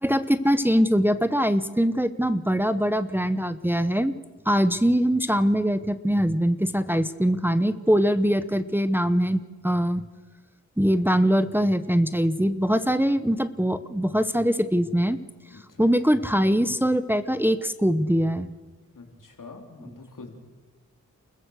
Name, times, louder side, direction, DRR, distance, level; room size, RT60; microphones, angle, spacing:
voice 1, 0.0-4.1 4.5-10.0 10.8-15.2 15.8-18.5, equal, 5° right, 12 dB, 0.9 m, -22 dB
voice 2, 15.5-15.9 18.9-20.3, left 4 dB, 80° left, 3 dB, 3.5 m, -45 dB
28.5 x 14.5 x 6.4 m, 1.3 s
cardioid pair, 50°, 32 cm